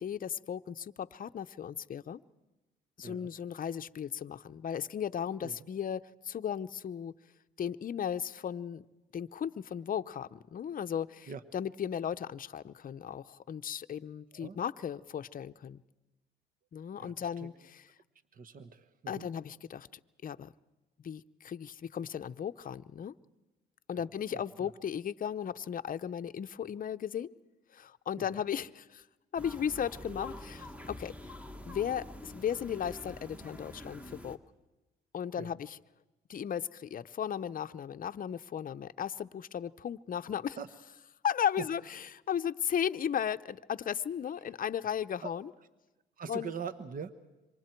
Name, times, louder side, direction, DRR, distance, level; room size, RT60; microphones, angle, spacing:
voice 1, 0.0-2.2 3.0-7.1 7.6-8.8 9.1-15.8 16.7-17.9 19.1-19.9 20.2-20.5 21.0-23.1 23.9-27.3 27.7-29.0 29.3-31.3 31.7-34.4 35.1-35.8 36.3-40.6 41.2-45.5 46.3-46.5, left 8 dB, 45° left, 12 dB, 0.7 m, -36 dB
voice 2, 17.0-17.5 18.3-19.3 23.9-24.7 28.2-28.3 35.4-35.5 40.6-40.7 45.2-45.3 46.2-47.3, right 5 dB, 45° right, 11 dB, 1.1 m, -43 dB
roomtone sunday open, 29.4-34.4, left 1 dB, 5° right, 1.5 m, -46 dB
27.0 x 24.5 x 4.5 m, 1.1 s
cardioid pair, 90°, 20 cm